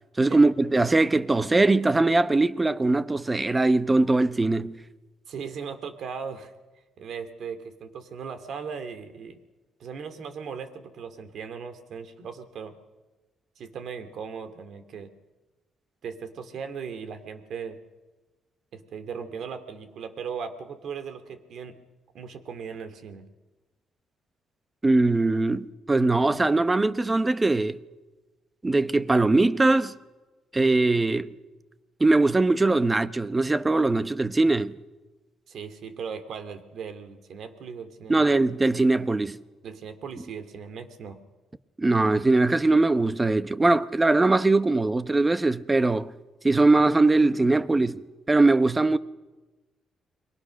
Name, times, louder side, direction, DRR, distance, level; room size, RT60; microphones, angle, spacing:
voice 1, 0.2-4.8 24.8-27.8 28.6-30.0 30.5-31.3 32.0-34.7 38.1-39.4 41.8-46.1 46.4-48.0 48.3-49.0, right 2 dB, 20° right, 1.0 m, -21 dB
voice 2, 5.3-6.5 7.0-9.4 9.8-12.8 13.6-15.1 16.0-17.8 18.7-21.8 22.1-23.3 35.5-38.3 39.6-41.2, right 6 dB, 65° right, 2.6 m, -38 dB
29.5 x 22.5 x 6.5 m
cardioid pair, 90°, 0 cm